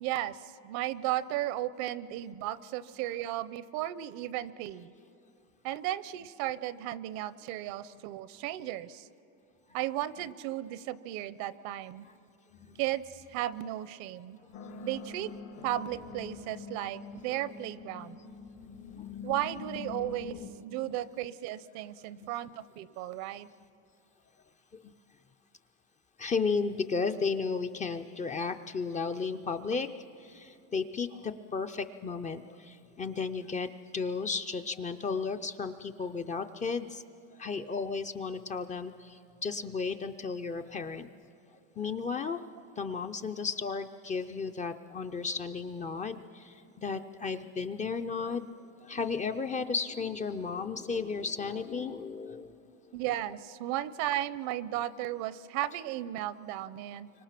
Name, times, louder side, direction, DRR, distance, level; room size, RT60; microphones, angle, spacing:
voice 1, 0.0-4.9 5.6-9.1 9.7-12.1 12.8-14.4 14.8-15.3 15.6-18.2 19.2-23.5 52.9-57.1, right 13 dB, 65° right, 17 dB, 0.8 m, -35 dB
voice 2, 12.5-12.8 14.4-14.6 19.0-19.1 22.2-22.6 24.8-24.9 26.2-29.9 30.2-37.0 37.3-41.1 41.8-42.4 42.8-48.5 48.8-52.6 52.8-52.9, left 5 dB, 20° left, 8 dB, 0.5 m, -34 dB
sound 1, 14.5-20.5, left 6 dB, 75° left, 3.1 m, -44 dB
29.5 x 25.0 x 5.9 m, 2.6 s
cardioid pair, 135°, 40 cm